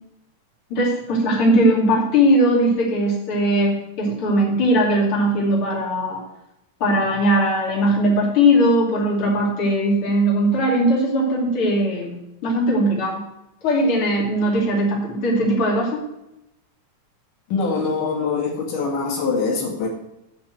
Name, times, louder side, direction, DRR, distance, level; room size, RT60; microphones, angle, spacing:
voice 1, 0.7-6.2 6.8-12.2 12.4-13.2 13.6-16.0, equal, 45° left, -3 dB, 3.4 m, -19 dB
voice 2, 17.5-19.9, left 4 dB, 90° left, -1 dB, 3.7 m, -23 dB
9.1 x 6.0 x 7.9 m, 0.87 s
omnidirectional pair, 3.6 m